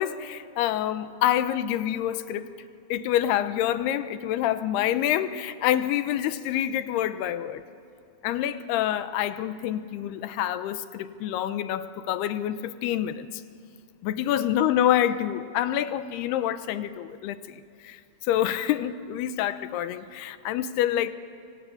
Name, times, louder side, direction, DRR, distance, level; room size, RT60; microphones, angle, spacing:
voice 1, 0.0-2.5 2.9-7.6 8.2-13.4 14.0-18.0 18.3-21.1, left 11 dB, 85° left, 12 dB, 2.9 m, -27 dB
25.5 x 24.5 x 8.4 m, 2.4 s
omnidirectional pair, 4.7 m